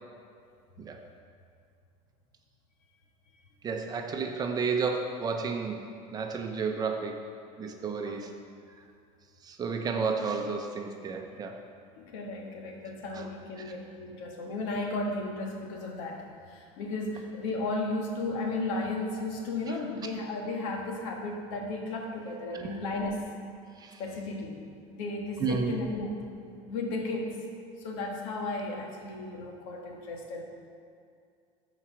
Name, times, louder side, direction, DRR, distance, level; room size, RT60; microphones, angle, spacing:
voice 1, 3.6-5.8 6.1-7.2 7.6-8.3 9.4-11.6 13.1-13.3 13.6-13.8 22.5-22.6 23.8-24.0 25.4-25.7, right 5 dB, 25° right, 4 dB, 0.7 m, -31 dB
voice 2, 11.9-23.3 24.0-24.7 24.9-26.2 26.6-27.4 27.8-30.4, left 2 dB, 90° left, 1 dB, 1.5 m, -34 dB
13.5 x 4.9 x 4.6 m, 2.4 s
cardioid pair, 150°, 16 cm